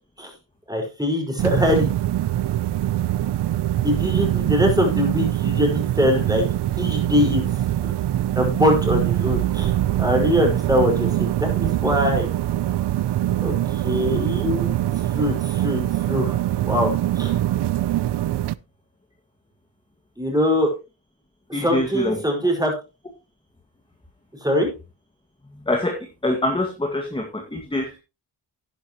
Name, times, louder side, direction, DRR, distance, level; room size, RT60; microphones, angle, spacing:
voice 1, 0.7-1.9 3.8-6.4 6.8-7.5 8.3-12.3 13.4-14.7 15.1-16.9 17.2-17.4 20.2-20.7 21.5-22.7 24.4-24.7, left 1 dB, 10° right, 2 dB, 4.9 m, -22 dB
sound 1, 1.4-18.5, right 13 dB, 65° right, 0.6 m, -23 dB
voice 2, 21.5-22.2 25.7-26.0 26.2-28.0, left 1 dB, 10° left, 2 dB, 1.9 m, -24 dB
11.5 x 10.5 x 3.0 m, 0.29 s
cardioid pair, 85°, 45 cm